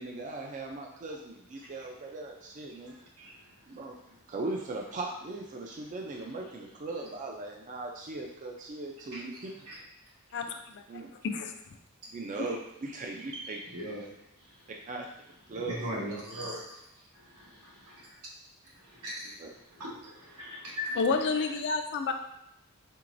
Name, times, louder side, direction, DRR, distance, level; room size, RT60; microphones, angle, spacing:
voice 1, 0.0-3.0 3.7-4.0 4.3-9.5 10.9-11.1 12.1-13.6 14.9-15.1 15.5-16.0 19.4-19.5, right 2 dB, 35° right, 0 dB, 0.4 m, -38 dB
voice 2, 10.3-10.8 11.2-11.5 20.9-22.1, left 4 dB, 50° left, 6 dB, 0.4 m, -29 dB
voice 3, 15.6-16.8 17.1-18.1 18.8-21.0, equal, 85° right, -5 dB, 1.5 m, -39 dB
4.5 x 3.8 x 2.5 m, 0.80 s
head